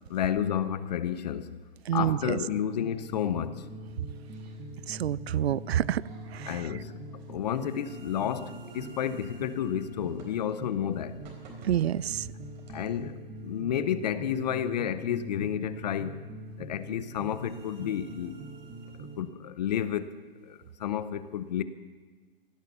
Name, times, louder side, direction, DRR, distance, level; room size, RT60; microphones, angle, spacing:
voice 1, 0.1-1.6 1.9-3.7 6.5-11.2 12.7-16.2 16.6-18.5 19.0-21.6, left 9 dB, 45° left, 0.9 m, -31 dB
voice 2, 1.9-2.4 4.9-6.0 6.3-6.6 11.6-12.3, right 11 dB, 85° right, 0.5 m, -28 dB
sound 1, 2.1-19.2, right 1 dB, 15° right, 1.3 m, -44 dB
sound 2, 4.2-12.9, right 3 dB, 45° right, 3.9 m, -56 dB
16.5 x 11.5 x 6.9 m
hypercardioid pair, 155°, 31 cm